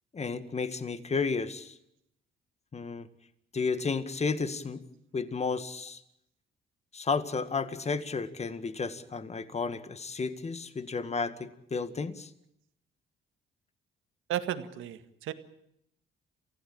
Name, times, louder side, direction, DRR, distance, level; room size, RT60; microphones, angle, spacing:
voice 1, 0.1-1.8 2.7-3.1 3.5-4.8 5.1-6.0 6.9-12.3, left 4 dB, 35° left, 12 dB, 1.9 m, -32 dB
voice 2, 14.3-15.3, right 11 dB, 85° right, 9 dB, 1.9 m, -34 dB
27.5 x 16.0 x 8.8 m, 0.76 s
cardioid pair, 90°, 20 cm